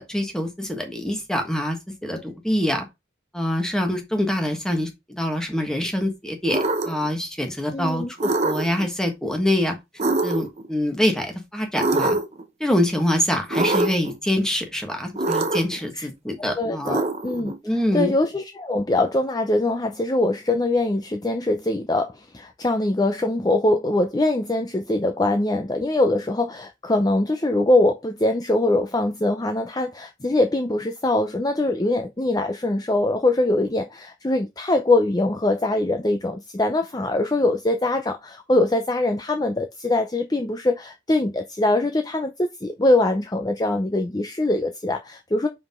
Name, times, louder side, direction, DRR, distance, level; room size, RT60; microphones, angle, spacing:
voice 1, 0.0-1.8 2.0-2.9 3.3-9.7 10.2-12.2 12.6-17.0 17.6-18.1, left 1 dB, 5° left, 1.4 m, -25 dB
sound 1, 6.5-7.1 8.2-8.9 10.0-10.7 11.8-12.4 13.5-14.1 15.2-15.8 16.8-17.6, right 2 dB, 35° right, 0.8 m, -24 dB
voice 2, 7.7-8.1 15.9-16.1 16.6-17.5 17.9-45.5, left 2 dB, 20° left, 0.5 m, -22 dB
5.6 x 5.1 x 3.6 m
head